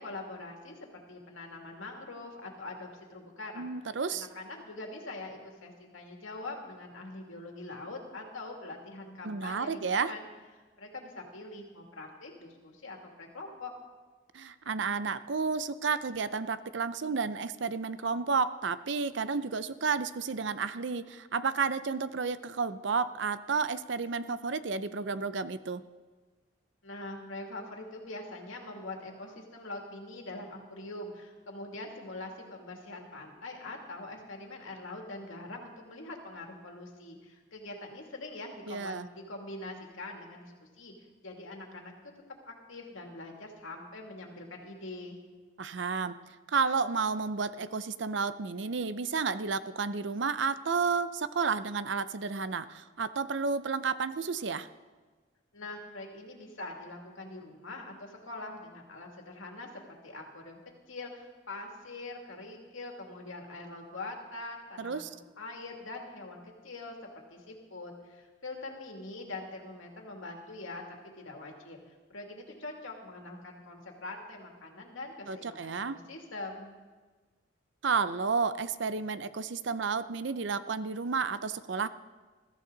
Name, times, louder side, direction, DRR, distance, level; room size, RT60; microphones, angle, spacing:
voice 1, 0.0-3.7 4.1-10.2 10.8-13.7 26.8-40.9 41.2-41.9 42.4-45.2 55.5-59.7 60.0-60.6 60.9-67.0 67.3-76.7, left 2 dB, 80° left, 1 dB, 2.6 m, -43 dB
voice 2, 3.6-4.3 9.2-10.1 14.3-25.8 38.7-39.1 45.6-46.2 46.5-54.7 64.8-65.1 75.3-76.0 77.8-81.9, right 5 dB, 65° right, 13 dB, 0.6 m, -31 dB
21.5 x 14.0 x 4.0 m, 1.3 s
head